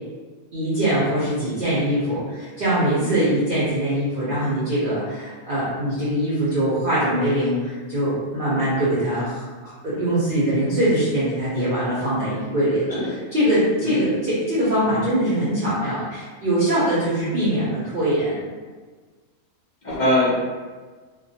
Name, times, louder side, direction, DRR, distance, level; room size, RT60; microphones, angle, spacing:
voice 1, 0.5-13.0 13.3-18.4, right 1 dB, 55° right, -9 dB, 0.6 m, -22 dB
voice 2, 19.8-20.3, left 1 dB, 50° left, -7 dB, 0.5 m, -22 dB
2.2 x 2.2 x 2.7 m, 1.4 s
omnidirectional pair, 1.5 m